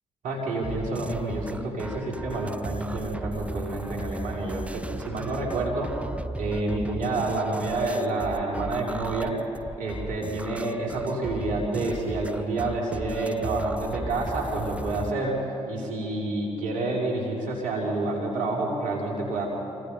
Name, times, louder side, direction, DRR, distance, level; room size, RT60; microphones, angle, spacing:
voice 1, 0.2-5.9 6.4-9.3 9.8-19.5, right 2 dB, 75° right, -3 dB, 5.2 m, -28 dB
sound 1, 0.6-15.1, right 1 dB, 10° right, 0.8 m, -36 dB
27.0 x 25.0 x 5.3 m, 2.9 s
hypercardioid pair, 45°, 13 cm